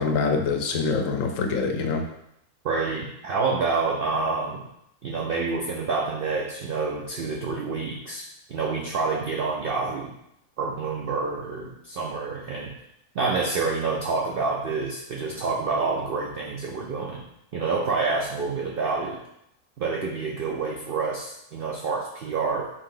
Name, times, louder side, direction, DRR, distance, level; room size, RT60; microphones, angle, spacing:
voice 1, 0.0-2.0, left 4 dB, 70° left, 4 dB, 0.9 m, -25 dB
voice 2, 2.6-4.6 5.0-10.1 10.6-12.7 13.1-17.2 17.5-19.2 19.8-22.7, right 4 dB, 70° right, -1 dB, 0.5 m, -28 dB
4.6 x 2.7 x 3.7 m, 0.79 s
omnidirectional pair, 1.5 m